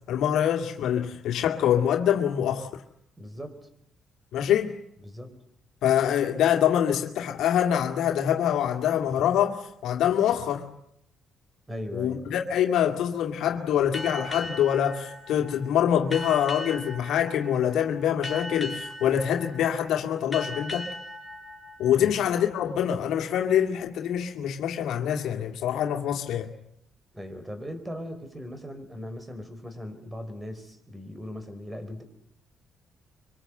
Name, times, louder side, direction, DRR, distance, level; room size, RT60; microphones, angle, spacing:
voice 1, 0.1-2.8 4.3-4.7 5.8-10.7 11.9-20.9 21.8-26.5, left 9 dB, 80° left, 2.2 m, -25 dB
voice 2, 3.2-3.7 5.0-5.3 11.7-12.3 21.9-22.2 27.1-32.0, equal, 15° right, 5.0 m, -39 dB
sound 1, 13.9-23.1, left 1 dB, 25° left, 4.5 m, -40 dB
25.0 x 24.5 x 7.9 m
cardioid pair, 90°, 0 cm